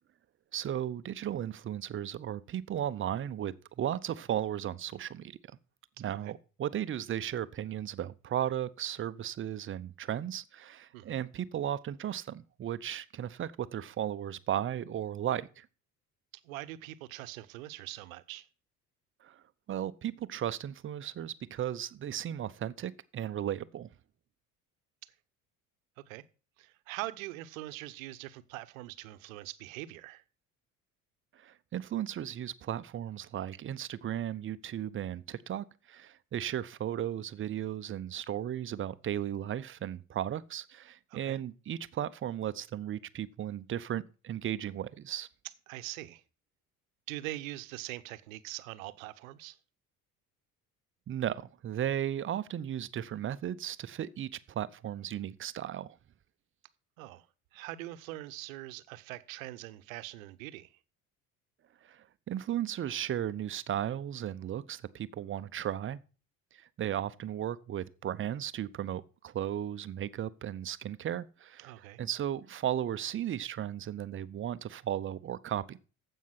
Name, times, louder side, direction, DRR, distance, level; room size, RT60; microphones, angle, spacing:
voice 1, 0.5-5.4 6.0-15.7 19.2-19.4 19.7-23.9 31.4-45.3 51.1-56.0 61.8-66.0 66.6-71.7 72.0-75.8, right 10 dB, 30° right, 0.7 m, -35 dB
voice 2, 16.4-18.5 26.1-26.2 26.6-30.2 41.1-41.4 45.7-46.2 47.1-49.6 57.0-57.3 57.5-60.7 71.6-72.0, right 17 dB, 65° right, 0.9 m, -43 dB
14.5 x 5.6 x 5.8 m
figure-of-eight pair, 60°, 44 cm